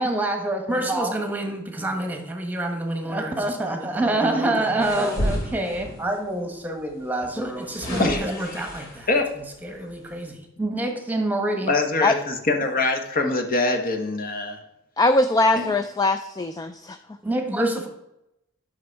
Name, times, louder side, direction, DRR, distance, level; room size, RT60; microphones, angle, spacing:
voice 1, 0.0-9.1 9.4-11.7 17.2-17.9, right 1 dB, 10° right, 4 dB, 1.3 m, -26 dB
sound 1, 4.8-6.1 7.2-9.2 9.8-9.9, equal, 60° left, 3.1 m, -31 dB
voice 2, 8.0-8.4 9.1-9.3 11.7-14.6 15.5-15.7, left 3 dB, 45° left, 5 dB, 1.2 m, -23 dB
voice 3, 15.0-17.0, left 2 dB, 15° left, 8 dB, 0.4 m, -21 dB
10.5 x 6.1 x 4.6 m, 0.86 s
head